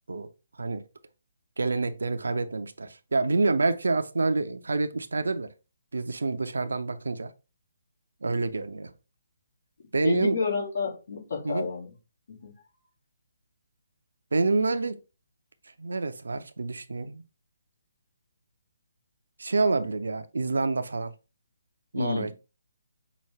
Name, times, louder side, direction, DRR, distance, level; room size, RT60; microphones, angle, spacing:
voice 1, 1.6-5.5 5.9-7.3 8.2-8.9 9.9-10.4 11.4-11.7 14.3-15.0 15.8-17.2 19.4-21.1 21.9-22.3, right 3 dB, 65° right, 0.5 m, -27 dB
voice 2, 10.0-11.9 12.3-12.5 21.9-22.3, left 5 dB, 55° left, 1.9 m, -30 dB
5.8 x 2.5 x 3.3 m
figure-of-eight pair, 140°, 0 cm